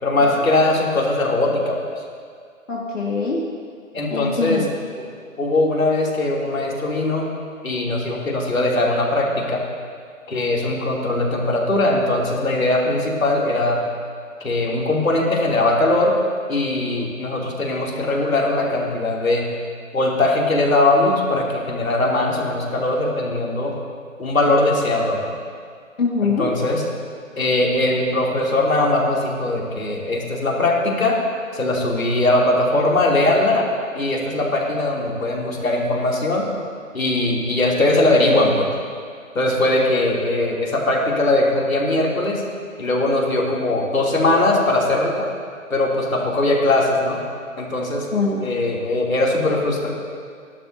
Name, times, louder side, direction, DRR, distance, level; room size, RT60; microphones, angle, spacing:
voice 1, 0.0-1.9 3.9-4.6 5.0-5.1 5.4-7.3 7.6-9.6 10.3-13.8 14.4-16.1 16.5-19.5 19.9-23.7 24.2-25.3 26.2-26.8 27.4-31.2 31.5-33.7 33.9-36.4 36.9-38.7 39.3-42.4 42.8-45.3 45.7-47.2 47.6-48.1 48.4-49.9, left 2 dB, 85° left, -3 dB, 3.1 m, -20 dB
voice 2, 2.7-3.4 4.1-4.7 26.0-26.4 48.1-48.5, left 4 dB, 65° left, -5 dB, 2.1 m, -23 dB
24.0 x 12.0 x 2.8 m, 2.1 s
hypercardioid pair, 170°, 40 cm